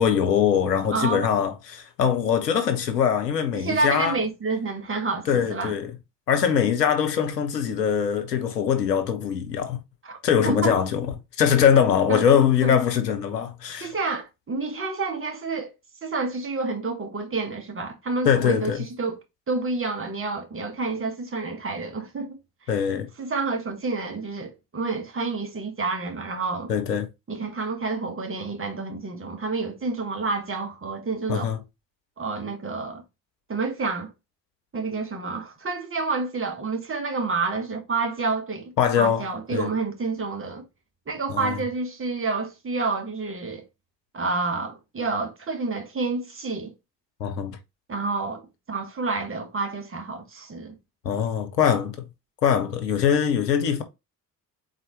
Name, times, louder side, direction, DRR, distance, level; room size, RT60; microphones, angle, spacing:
voice 1, 0.0-4.2 5.3-5.9 6.3-9.8 10.2-11.1 11.4-13.9 18.3-18.8 22.7-23.1 26.7-27.1 31.3-31.6 38.8-39.2 39.5-39.7 41.3-41.6 47.2-47.6 51.0-52.0 52.4-53.8, left 8 dB, 85° left, 0.8 m, -22 dB
voice 2, 0.9-1.3 3.5-5.8 10.0-10.2 10.4-10.7 12.1-12.2 12.6-12.8 13.8-15.7 16.0-19.2 19.5-22.4 23.2-26.7 27.3-31.5 32.2-33.0 33.5-34.1 34.7-40.6 41.1-43.7 44.1-46.7 47.9-50.8, right 3 dB, 25° right, 1.6 m, -29 dB
4.0 x 4.0 x 3.1 m
figure-of-eight pair, 45°, 47 cm